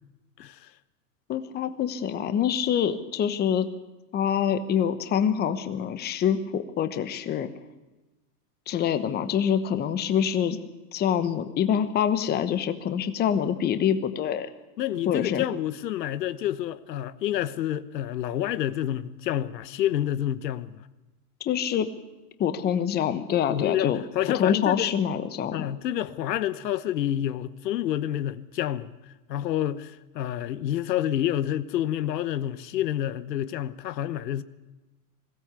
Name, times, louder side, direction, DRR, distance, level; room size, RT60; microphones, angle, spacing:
voice 1, 0.4-0.7 14.8-20.8 23.5-24.9 25.5-29.0 29.3-34.4, left 12 dB, 80° left, 1.2 m, -28 dB
voice 2, 1.3-3.7 4.1-7.5 8.7-10.6 10.9-14.5 15.1-15.4 21.4-21.9 22.4-24.0 24.4-25.6, left 8 dB, 20° left, 1.1 m, -25 dB
21.0 x 16.5 x 8.3 m
supercardioid pair, 140°, 49 cm